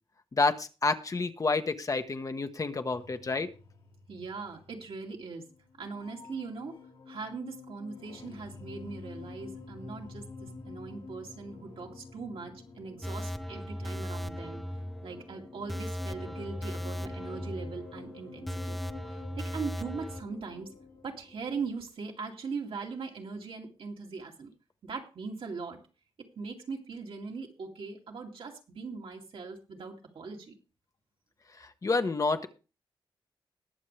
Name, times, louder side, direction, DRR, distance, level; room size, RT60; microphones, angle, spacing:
voice 1, 0.3-3.5 31.6-32.5, left 3 dB, 35° left, 8 dB, 1.0 m, -29 dB
sound 1, 2.9-21.7, left 4 dB, 65° left, 2.2 m, -49 dB
voice 2, 4.1-5.4 5.8-6.8 7.1-14.6 15.0-18.8 19.1-20.7 21.0-24.5 24.8-25.8 26.4-30.5, right 4 dB, 70° right, 1 dB, 2.4 m, -40 dB
Nuclear Alarm, 13.0-20.2, equal, ahead, 0.7 m, -38 dB
20.5 x 7.1 x 3.3 m, 0.33 s
wide cardioid pair, 100°, 9 cm